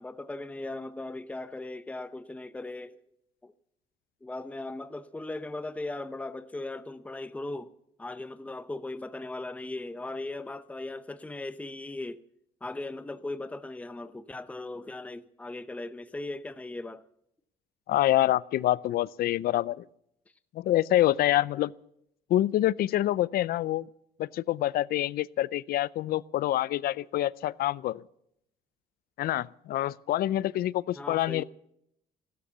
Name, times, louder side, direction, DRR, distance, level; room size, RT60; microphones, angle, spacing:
voice 1, 0.0-3.0 3.4-3.5 4.2-7.7 8.0-12.2 12.6-17.0 31.0-31.4, left 2 dB, 10° left, 0.7 m, -38 dB
voice 2, 17.9-19.9 20.5-21.7 22.3-23.9 24.2-28.0 29.2-31.4, left 14 dB, 65° left, 0.5 m, -26 dB
15.5 x 13.0 x 7.0 m
cardioid pair, 110°, 17 cm